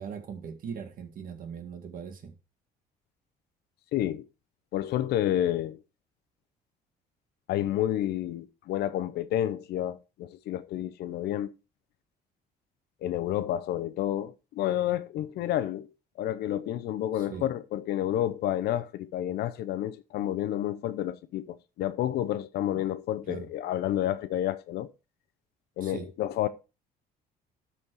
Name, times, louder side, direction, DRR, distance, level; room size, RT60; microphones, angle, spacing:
voice 1, 0.0-2.3 17.2-17.5 23.3-23.5 25.8-26.1, right 7 dB, 55° right, 2.0 m, -40 dB
voice 2, 3.9-4.3 4.7-5.8 7.5-11.5 13.0-15.9 16.2-24.9 25.8-26.5, left 12 dB, 75° left, 0.8 m, -30 dB
12.5 x 4.3 x 4.7 m
cardioid pair, 110°, 17 cm